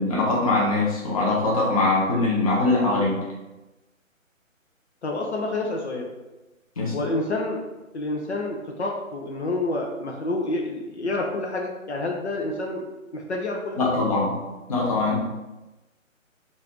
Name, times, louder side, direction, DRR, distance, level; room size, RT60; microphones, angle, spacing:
voice 1, 0.0-3.2 6.8-6.9 13.8-14.4 14.7-15.2, left 2 dB, 25° left, -5 dB, 0.8 m, -22 dB
voice 2, 5.0-6.1 6.9-7.6 7.9-12.9 13.1-13.8, left 2 dB, 55° left, 0 dB, 0.8 m, -28 dB
5.5 x 2.6 x 3.0 m, 1.1 s
figure-of-eight pair, 155°, 41 cm